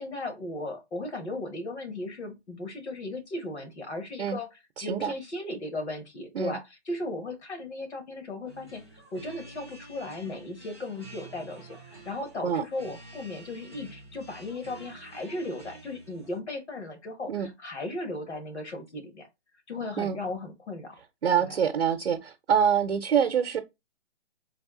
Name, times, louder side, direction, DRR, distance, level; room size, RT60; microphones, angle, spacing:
voice 1, 0.0-19.3 19.7-21.0 21.4-21.6, left 2 dB, 75° left, 1.6 m, -36 dB
voice 2, 4.8-5.1 6.3-6.6 12.4-12.6 17.3-17.5 20.0-20.2 21.2-23.6, right 8 dB, 65° right, 0.6 m, -25 dB
sound 1, 8.5-16.4, right 2 dB, 25° left, 0.5 m, -49 dB
3.5 x 2.7 x 3.6 m
hypercardioid pair, 175°, 34 cm